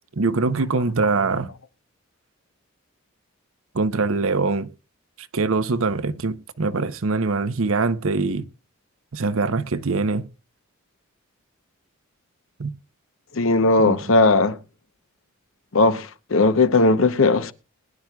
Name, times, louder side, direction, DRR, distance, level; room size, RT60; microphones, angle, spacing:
voice 1, 0.2-1.5 3.7-4.7 5.2-8.5 9.1-10.3 12.6-12.7 13.8-14.0, right 3 dB, 75° right, 0.8 m, -23 dB
voice 2, 13.3-14.6 15.7-17.5, left 3 dB, 65° left, 0.9 m, -18 dB
21.5 x 10.5 x 2.3 m
head